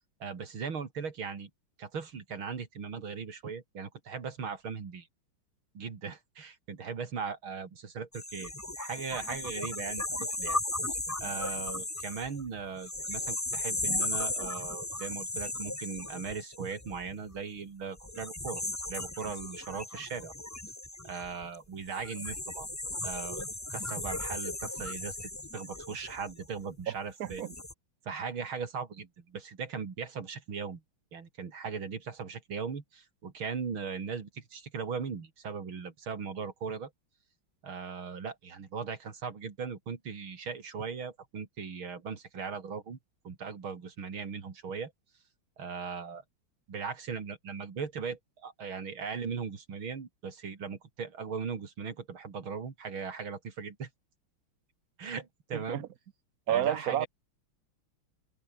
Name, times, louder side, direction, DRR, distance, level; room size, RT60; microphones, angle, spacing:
voice 1, 0.2-1.5 1.8-5.1 5.8-8.5 8.8-10.6 11.2-18.6 18.9-20.3 21.0-22.7 23.0-27.4 28.1-30.8 31.1-36.9 37.6-43.0 43.2-44.9 45.6-46.2 46.7-53.9 55.0-55.8 56.5-57.1, right 5 dB, 80° right, 3.5 m, -38 dB
sound 1, 8.1-17.3 18.0-26.7 27.2-27.7, left 2 dB, 10° left, 1.1 m, -36 dB
voice 2, 26.9-27.5 55.7-55.9 56.5-57.1, right 11 dB, 55° right, 1.1 m, -30 dB
omnidirectional pair, 2.2 m